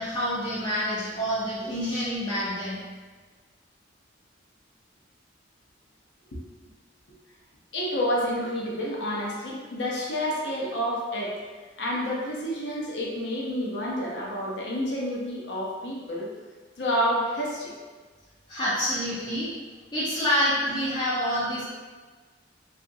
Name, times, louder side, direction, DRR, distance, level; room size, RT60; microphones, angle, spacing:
voice 1, 0.0-2.8 18.5-19.5 19.9-21.6, equal, 25° left, -12 dB, 0.6 m, -27 dB
voice 2, 7.7-11.3 11.8-16.3 16.8-17.7, equal, 70° left, -4 dB, 0.7 m, -29 dB
2.8 x 2.5 x 2.6 m, 1.4 s
head